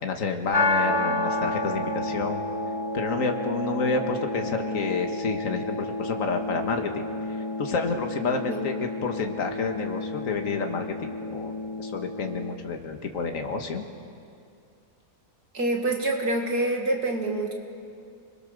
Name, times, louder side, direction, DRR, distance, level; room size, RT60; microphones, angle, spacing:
voice 1, 0.0-2.4 2.9-7.1 7.6-13.9, left 4 dB, 50° left, 4 dB, 1.9 m, -29 dB
sound 1, 0.5-12.5, left 2 dB, 15° left, 1.0 m, -30 dB
voice 2, 15.5-17.5, right 2 dB, 60° right, 1 dB, 2.7 m, -26 dB
29.5 x 21.5 x 6.7 m, 2.4 s
omnidirectional pair, 1.8 m